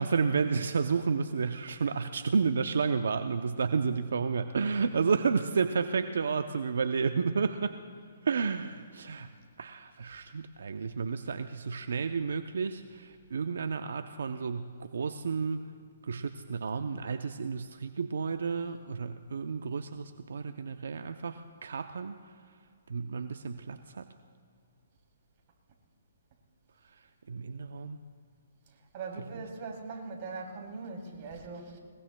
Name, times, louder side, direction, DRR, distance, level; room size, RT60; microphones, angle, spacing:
voice 1, 0.0-7.8 8.2-9.3 9.6-15.6 16.0-22.3 22.9-24.1 26.9-27.0 27.3-28.0, right 5 dB, 75° right, 9 dB, 0.6 m, -31 dB
voice 2, 28.9-31.8, right 4 dB, 40° right, 0 dB, 2.9 m, -40 dB
21.5 x 20.5 x 2.2 m, 2.3 s
hypercardioid pair, 150°, 0 cm